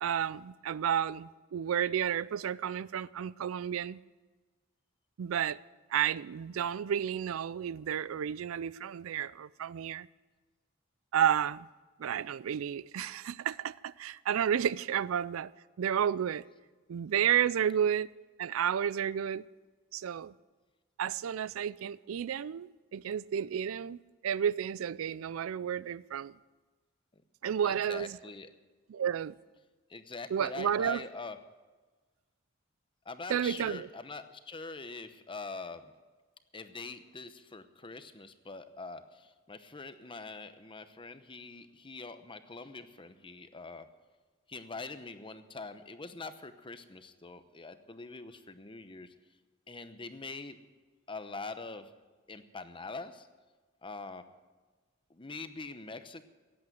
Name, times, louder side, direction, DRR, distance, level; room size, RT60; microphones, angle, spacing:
voice 1, 0.0-4.0 5.2-5.6 5.9-10.1 11.1-11.7 12.0-15.5 15.8-16.4 16.9-18.1 18.4-19.4 19.9-20.3 21.0-26.3 27.4-28.2 28.9-29.3 30.3-31.0 33.3-33.9, right 9 dB, 80° right, 0.4 m, -31 dB
voice 2, 27.6-28.5 29.9-31.4 33.0-35.9 36.5-43.9 44.5-49.1 49.7-50.6 51.1-51.9 52.3-53.3 53.8-54.2 55.1-56.2, left 3 dB, 25° left, 0.8 m, -44 dB
16.5 x 8.7 x 7.9 m
head